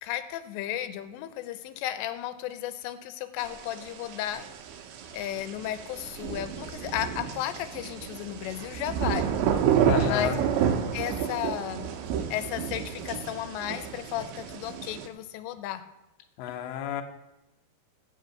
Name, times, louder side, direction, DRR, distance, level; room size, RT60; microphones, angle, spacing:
voice 1, 0.0-4.5 5.1-9.4 10.0-11.9 12.3-15.8, left 12 dB, 90° left, 10 dB, 2.9 m, -34 dB
sound 1, 3.4-15.1, right 8 dB, 85° right, 3.2 m, -30 dB
voice 2, 9.8-10.4 16.4-17.0, left 10 dB, 70° left, 4 dB, 2.2 m, -30 dB
8.5 x 6.7 x 7.8 m, 0.97 s
omnidirectional pair, 5.0 m